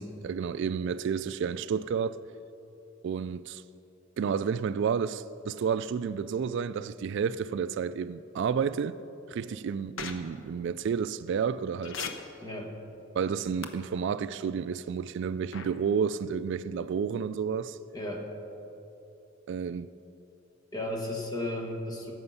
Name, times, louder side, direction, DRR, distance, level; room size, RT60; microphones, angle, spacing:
voice 1, 0.2-2.2 3.0-3.6 4.2-9.0 9.3-12.0 13.1-17.8 19.5-19.9, right 6 dB, 65° right, 0.3 m, -30 dB
sound 1, 10.0-10.1 11.8-12.1 13.6-13.7 15.5-15.7, left 7 dB, 75° left, 0.9 m, -35 dB
voice 2, 12.4-12.7 17.9-18.3 20.7-22.1, left 1 dB, 20° left, 1.5 m, -34 dB
17.0 x 7.9 x 5.6 m
head